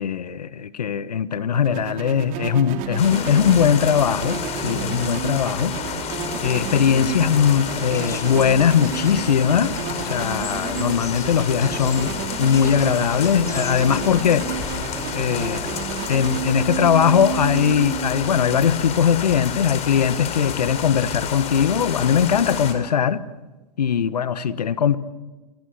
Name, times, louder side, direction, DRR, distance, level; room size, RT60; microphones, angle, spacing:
voice 1, 0.0-5.8 6.4-9.8 10.0-14.6 15.1-15.6 16.1-23.2 23.8-25.0, left 8 dB, 80° left, 1.3 m, -20 dB
sound 1, 1.5-19.3, right 9 dB, 40° right, 2.7 m, -31 dB
sound 2, 3.0-22.7, left 7 dB, 30° left, 4.4 m, -31 dB
sound 3, 7.7-15.2, left 4 dB, 15° left, 2.8 m, -39 dB
29.0 x 24.5 x 6.4 m
hypercardioid pair, 105°, 20 cm